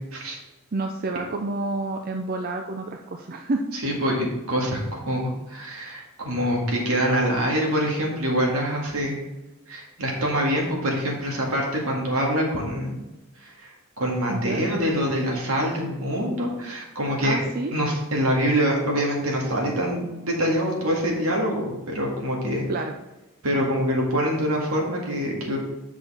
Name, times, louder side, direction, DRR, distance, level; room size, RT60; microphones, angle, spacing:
voice 1, 0.7-3.6 14.3-14.6 17.2-17.7 22.7-22.9, right 2 dB, 45° right, 4 dB, 0.5 m, -29 dB
voice 2, 3.7-9.2 9.7-13.0 13.4-13.7 14.0-17.4 17.7-22.6 23.4-25.6, equal, 80° right, -1 dB, 2.2 m, -25 dB
7.8 x 6.0 x 4.3 m, 1.0 s
head